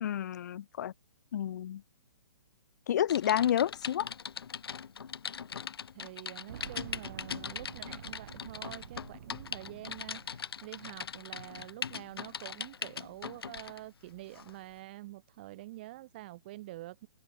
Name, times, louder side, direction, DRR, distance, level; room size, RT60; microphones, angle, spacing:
voice 1, 0.0-0.9 1.3-1.8 2.9-4.1, left 10 dB, 45° left, 0.5 m, -30 dB
Typing, 3.1-13.8 14.3-14.5, left 7 dB, 80° left, 1.3 m, -41 dB
voice 2, 5.9-17.1, right 17 dB, 25° right, 0.5 m, -47 dB
Boom, 6.5-11.2 11.5-11.6 12.7-12.8, right 10 dB, 50° right, 1.0 m, -49 dB
open air
hypercardioid pair, 165°, 13 cm